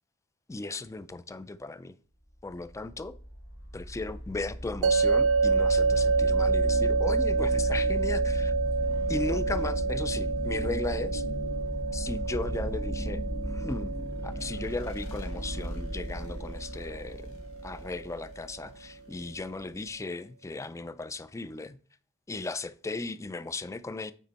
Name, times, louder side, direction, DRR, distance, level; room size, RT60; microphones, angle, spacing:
voice 1, 0.5-1.9 2.4-3.2 3.7-8.5 9.1-11.2 11.9-13.9 14.2-21.8 22.3-24.1, left 3 dB, 15° left, 0.3 m, -36 dB
sound 1, 2.6-19.9, equal, 85° left, 1.5 m, -35 dB
sound 2, 4.8-17.9, right 4 dB, 65° right, 0.4 m, -29 dB
9.2 x 4.2 x 4.0 m
head